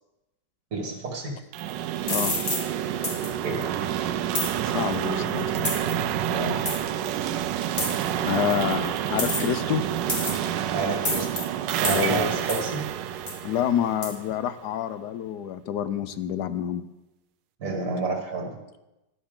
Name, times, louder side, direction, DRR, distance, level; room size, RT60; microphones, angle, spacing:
voice 1, 0.7-1.4 3.4-3.6 6.3-6.6 10.7-11.3 11.7-12.9 17.6-18.6, right 3 dB, 60° right, 1 dB, 2.3 m, -29 dB
sound 1, 1.5-14.4, right 10 dB, 80° right, 1.3 m, -28 dB
sound 2, 2.1-2.6 3.0-3.3 4.3-4.5 5.6-5.9 6.7-6.8 7.8-8.1 9.2-9.6 10.1-10.5 11.0-11.4 11.8-12.1 12.5-12.7 13.3-13.4 14.0-14.1, left 2 dB, 25° left, 2.1 m, -28 dB
voice 2, 4.7-5.7 8.2-9.8 11.9-12.3 13.4-16.9, left 10 dB, 70° left, 13 dB, 1.2 m, -28 dB
13.0 x 10.5 x 3.8 m, 0.97 s
omnidirectional pair, 1.9 m